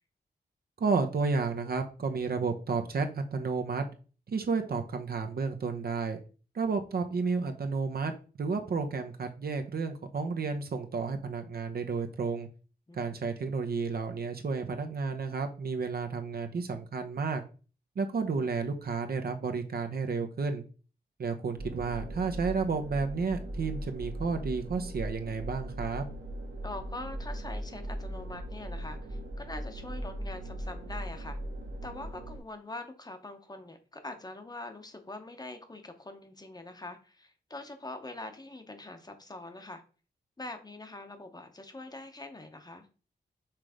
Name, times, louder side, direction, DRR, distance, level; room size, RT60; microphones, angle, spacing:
voice 1, 0.8-3.8 4.3-6.2 6.5-8.1 8.4-12.5 12.9-17.4 18.0-20.6 21.2-26.0, right 4 dB, 60° right, 6 dB, 0.8 m, -31 dB
voice 2, 12.9-13.2 26.6-31.4 31.8-39.8 40.4-42.9, left 2 dB, 20° left, 7 dB, 0.9 m, -43 dB
sound 1, 21.6-32.4, right 1 dB, 90° right, 1.6 m, -39 dB
5.9 x 3.3 x 4.9 m, 0.37 s
wide cardioid pair, 125°, 18 cm